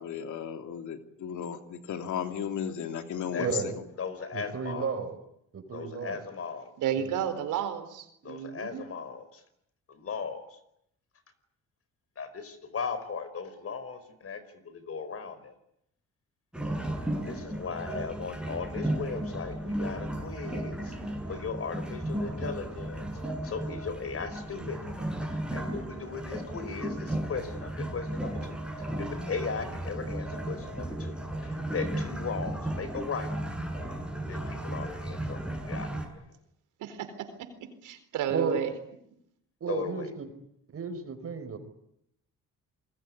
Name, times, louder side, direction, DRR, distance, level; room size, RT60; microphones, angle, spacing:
voice 1, 0.0-3.7, left 8 dB, 75° left, 7 dB, 2.9 m, -35 dB
voice 2, 3.4-3.8 4.3-5.2 5.5-6.2 7.0-7.2 38.3-38.6 39.6-40.3 40.7-41.6, right 5 dB, 50° right, 9 dB, 4.8 m, -33 dB
voice 3, 4.0-5.0 5.7-6.7 8.2-9.4 9.9-10.4 12.2-15.5 17.2-21.0 21.3-23.1 23.4-24.8 25.2-31.2 31.4-33.3 34.2-36.0 39.7-40.1, left 5 dB, 50° left, 12 dB, 5.1 m, -37 dB
voice 4, 6.8-8.8 36.8-37.1 37.4-38.7, right 9 dB, 90° right, 9 dB, 4.1 m, -32 dB
sound 1, 16.5-36.1, right 1 dB, 5° right, 7.7 m, -35 dB
28.5 x 21.0 x 9.9 m, 0.77 s
cardioid pair, 90°, 30 cm